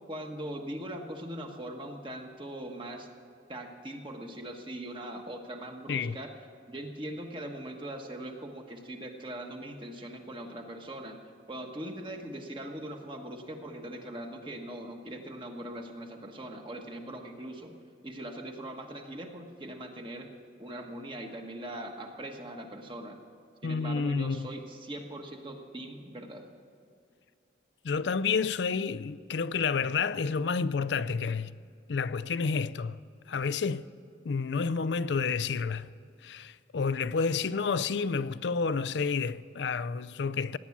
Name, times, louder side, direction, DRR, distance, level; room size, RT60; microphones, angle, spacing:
voice 1, 0.1-3.1 3.5-6.3 6.7-11.2 11.5-17.8 18.0-20.3 20.6-23.2 23.6-26.4, right 1 dB, 25° right, 1.4 m, -41 dB
voice 2, 23.6-24.5 27.8-31.6 31.9-33.0 33.3-33.9 34.2-35.9 36.2-40.6, left 5 dB, 75° left, 0.4 m, -30 dB
17.5 x 9.7 x 7.3 m
head